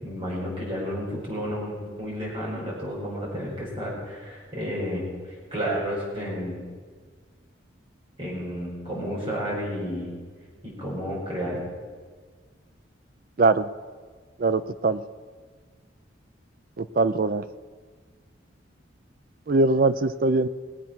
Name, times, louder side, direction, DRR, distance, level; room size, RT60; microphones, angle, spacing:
voice 1, 0.0-5.0 5.5-6.6 8.2-10.1 10.6-11.6, equal, 30° right, -6 dB, 5.2 m, -31 dB
voice 2, 13.4-13.7 14.4-15.0 16.8-17.4 19.5-20.5, right 3 dB, 45° right, 13 dB, 0.4 m, -22 dB
19.0 x 8.3 x 6.0 m, 1.5 s
head